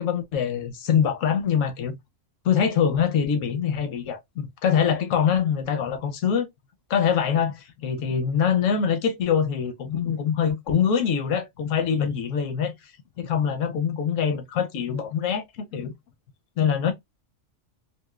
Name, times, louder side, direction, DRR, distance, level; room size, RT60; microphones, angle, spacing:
voice 1, 0.0-2.0 2.4-6.5 6.9-12.7 13.2-15.9 16.6-16.9, left 7 dB, 75° left, 1.0 m, -24 dB
3.0 x 2.6 x 2.3 m
omnidirectional pair, 1.3 m